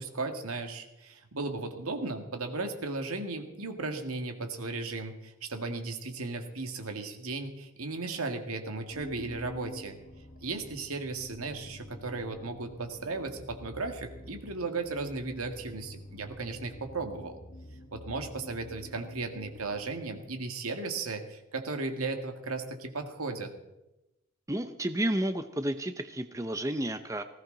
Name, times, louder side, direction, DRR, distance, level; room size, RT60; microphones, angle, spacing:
voice 1, 0.0-10.0 10.4-17.4 17.9-23.5, right 3 dB, 80° right, 5 dB, 2.0 m, -36 dB
sound 1, 8.9-20.8, left 1 dB, 55° left, 1.3 m, -49 dB
voice 2, 24.5-27.2, right 1 dB, 15° right, 9 dB, 0.6 m, -31 dB
19.0 x 16.5 x 3.9 m, 0.94 s
head